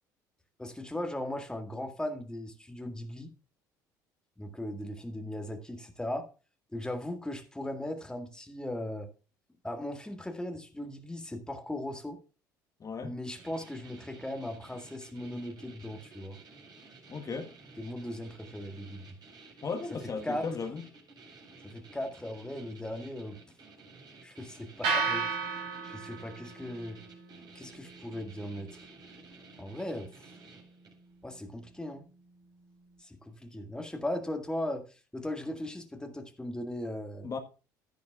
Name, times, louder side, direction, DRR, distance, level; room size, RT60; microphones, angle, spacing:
voice 1, 0.6-3.3 4.4-6.3 6.7-9.1 9.6-12.2 13.0-16.4 17.8-19.2 20.2-20.5 21.6-23.4 24.2-25.4 25.8-27.0 27.6-28.8 29.6-30.3 31.2-32.1 33.0-37.3, left 1 dB, 10° left, 1.9 m, -38 dB
voice 2, 12.8-13.2 17.1-17.5 19.6-20.8 37.2-37.4, left 5 dB, 35° left, 1.6 m, -36 dB
sound 1, 13.3-31.1, right 3 dB, 45° right, 4.5 m, -54 dB
sound 2, 24.8-33.0, right 4 dB, 70° right, 4.7 m, -38 dB
12.5 x 10.5 x 2.4 m
hypercardioid pair, 60°, 10 cm